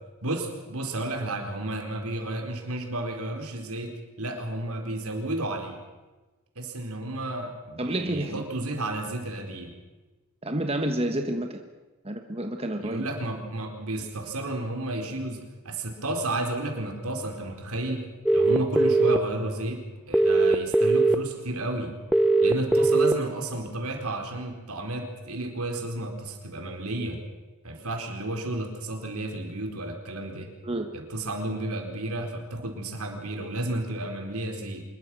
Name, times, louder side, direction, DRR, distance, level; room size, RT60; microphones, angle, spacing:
voice 1, 0.2-5.8 6.6-9.7 12.8-18.1 18.3-21.9 22.4-27.2 27.6-30.5 30.9-34.8, right 1 dB, 80° right, 3 dB, 4.2 m, -32 dB
voice 2, 7.8-8.4 10.4-11.6 12.0-13.1 30.6-31.0, right 1 dB, 25° right, 5 dB, 1.3 m, -29 dB
sound 1, 18.3-19.2 20.1-21.1 22.1-23.1, right 2 dB, 5° right, 0.8 m, -19 dB
25.5 x 21.5 x 6.2 m, 1.2 s
head